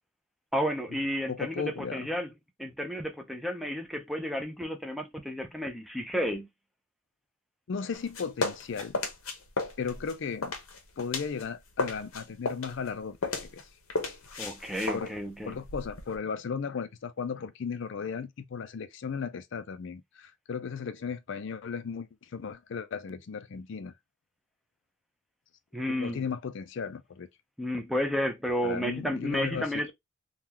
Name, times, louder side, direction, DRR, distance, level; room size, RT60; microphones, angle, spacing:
voice 1, 0.5-2.3 2.6-6.5 14.4-15.6 25.7-26.2 27.6-29.9, equal, ahead, 0.5 m, -32 dB
voice 2, 1.3-2.1 7.7-9.0 9.8-10.5 11.0-13.6 14.9-15.1 15.4-23.9 25.9-27.3 28.6-29.9, left 6 dB, 60° left, 0.4 m, -36 dB
sound 1, 7.9-11.4 11.7-16.2, left 3 dB, 90° left, 0.9 m, -34 dB
3.7 x 2.4 x 2.8 m
head